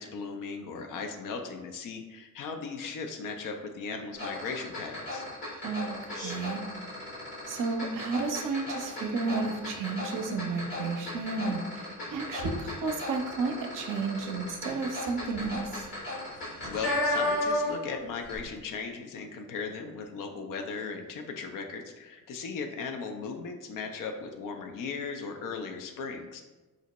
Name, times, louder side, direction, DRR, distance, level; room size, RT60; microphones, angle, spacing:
voice 1, 0.0-5.2 16.7-26.4, left 5 dB, 50° left, 4 dB, 0.5 m, -37 dB
sound 1, 4.1-17.9 18.2-18.4, left 1 dB, 70° left, 1.5 m, -35 dB
voice 2, 5.6-6.6 7.5-15.9, right 4 dB, 50° right, 3 dB, 0.6 m, -32 dB
3.9 x 2.1 x 3.0 m, 1.2 s
hypercardioid pair, 45°, 42 cm